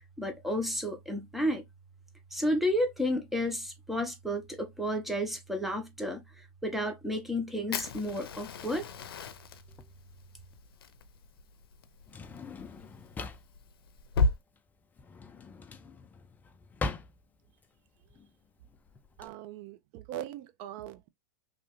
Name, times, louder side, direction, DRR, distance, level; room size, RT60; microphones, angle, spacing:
voice 1, 0.2-1.6 2.3-6.2 6.6-8.9, equal, ahead, 0.8 m, -31 dB
Fire, 7.7-14.4, left 3 dB, 85° left, 0.5 m, -35 dB
Drawer open or close, 9.7-19.3, left 3 dB, 15° left, 0.4 m, -42 dB
voice 2, 19.2-21.1, right 12 dB, 45° right, 0.6 m, -41 dB
3.0 x 2.4 x 3.0 m
hypercardioid pair, 125°, 12 cm